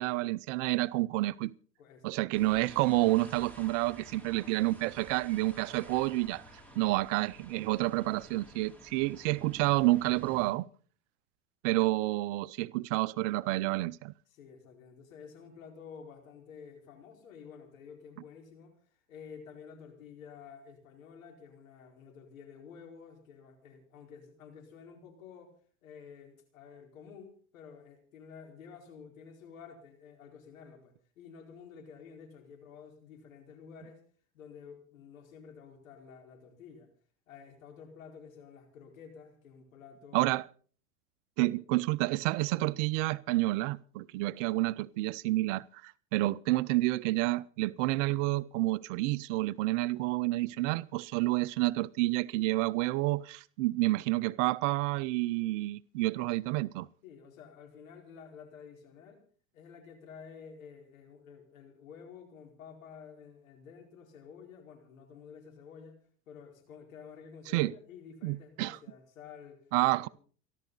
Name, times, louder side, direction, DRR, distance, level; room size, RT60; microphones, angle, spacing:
voice 1, 0.0-1.5 2.0-6.4 6.8-10.7 11.6-14.1 40.1-40.5 41.4-56.9 67.5-67.7 68.2-68.8 69.7-70.1, right 19 dB, 65° right, 0.7 m, -29 dB
voice 2, 1.8-2.4 4.1-4.6 6.7-7.0 14.3-25.5 25.8-34.0 34.3-36.9 37.3-40.4 41.4-41.6 57.0-59.2 59.5-69.6 70.0-70.1, left 6 dB, 85° left, 4.6 m, -51 dB
sound 1, 2.3-10.5, right 1 dB, 5° left, 5.2 m, -52 dB
29.0 x 12.0 x 4.0 m
hypercardioid pair, 95°, 39 cm